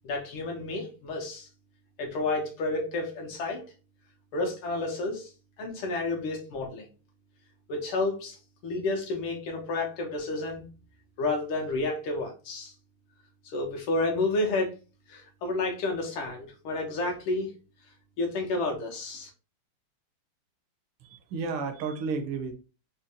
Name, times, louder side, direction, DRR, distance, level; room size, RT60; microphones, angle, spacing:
voice 1, 0.0-1.5 2.0-3.6 4.3-5.3 5.6-6.9 7.7-8.4 8.6-10.7 11.2-12.7 13.5-14.7 15.1-17.5 18.2-19.3, left 2 dB, 75° left, 1.8 m, -30 dB
voice 2, 21.0-22.5, right 4 dB, 80° right, 1.6 m, -32 dB
5.0 x 2.2 x 2.8 m
omnidirectional pair, 2.4 m